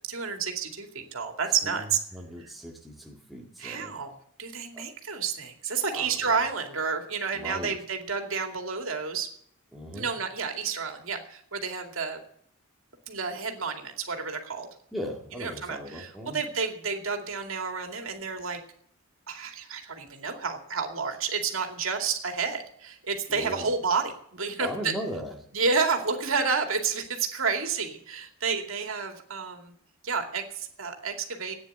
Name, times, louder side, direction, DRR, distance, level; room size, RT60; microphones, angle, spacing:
voice 1, 0.1-2.0 3.6-4.1 4.4-9.3 9.9-12.2 13.1-14.7 15.4-18.6 19.3-24.9 25.5-29.7 30.0-31.5, right 5 dB, 75° right, 4 dB, 2.5 m, -30 dB
voice 2, 1.6-3.9 4.7-4.9 5.9-6.3 7.3-7.8 9.7-10.1 14.9-16.4 23.3-23.7 24.6-25.4, equal, ahead, -1 dB, 2.0 m, -38 dB
13.5 x 9.7 x 8.0 m, 0.64 s
head